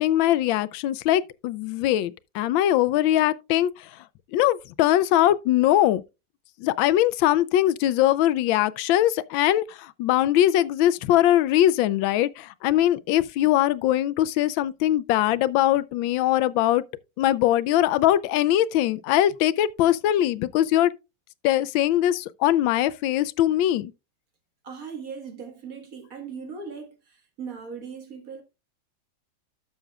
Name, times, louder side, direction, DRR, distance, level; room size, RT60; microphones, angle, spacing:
voice 1, 0.0-3.9 4.3-6.0 6.6-16.8 17.2-20.9 21.4-23.9, left 13 dB, 90° left, 1.4 m, -21 dB
voice 2, 24.6-27.0 27.4-28.4, right 5 dB, 50° right, 2.0 m, -38 dB
12.5 x 6.8 x 2.3 m
omnidirectional pair, 2.1 m